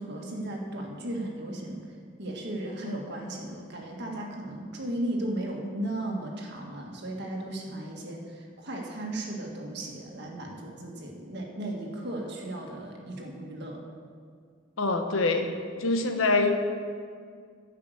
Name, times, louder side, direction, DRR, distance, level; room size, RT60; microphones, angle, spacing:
voice 1, 0.0-13.8, right 1 dB, 55° right, 0 dB, 1.7 m, -35 dB
voice 2, 14.8-15.5 15.8-16.5, left 3 dB, 80° left, 5 dB, 1.0 m, -24 dB
10.5 x 5.8 x 8.1 m, 2.1 s
head